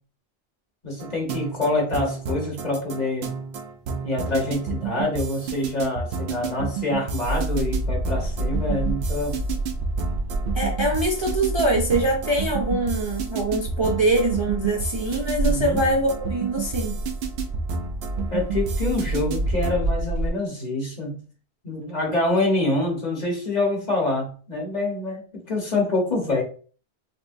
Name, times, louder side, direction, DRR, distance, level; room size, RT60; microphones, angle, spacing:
voice 1, 0.8-3.3 4.0-9.4 15.4-15.8 18.3-21.2 21.6-26.4, left 2 dB, 45° left, -1 dB, 1.1 m, -26 dB
sound 1, 1.0-19.9, right 5 dB, 85° right, 0.8 m, -31 dB
sound 2, 7.2-20.3, right 2 dB, 60° right, 1.3 m, -29 dB
voice 2, 10.5-17.0, right 1 dB, 35° right, -2 dB, 0.5 m, -23 dB
4.3 x 2.1 x 2.6 m, 0.40 s
omnidirectional pair, 1.0 m